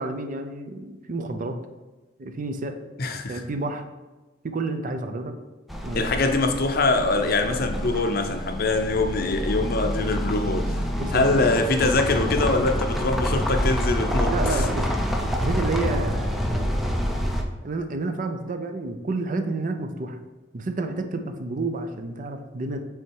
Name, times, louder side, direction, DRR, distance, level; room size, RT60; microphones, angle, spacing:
voice 1, 0.0-1.6 2.2-2.7 3.3-3.8 4.4-5.4 5.8-6.1 11.0-11.2 14.3-14.9 15.2-16.7 17.6-20.2 20.5-22.9, right 2 dB, 45° right, 7 dB, 0.5 m, -30 dB
voice 2, 3.0-3.4 5.9-10.8 11.1-14.7, left 3 dB, 55° left, 5 dB, 0.6 m, -23 dB
sound 1, 5.7-17.4, equal, ahead, 0.5 m, -27 dB
6.0 x 3.5 x 4.5 m, 1.1 s
head